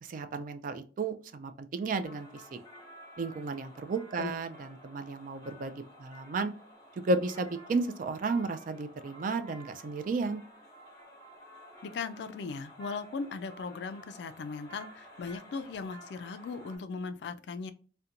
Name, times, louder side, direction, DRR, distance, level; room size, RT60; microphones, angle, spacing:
voice 1, 0.1-2.6 3.2-6.5 7.0-10.4, right 3 dB, 45° right, 9 dB, 0.3 m, -33 dB
sound 1, 2.0-16.8, equal, 20° left, 0.9 m, -52 dB
voice 2, 11.8-17.7, left 4 dB, 65° left, 11 dB, 0.3 m, -38 dB
2.5 x 2.2 x 2.8 m, 0.39 s
head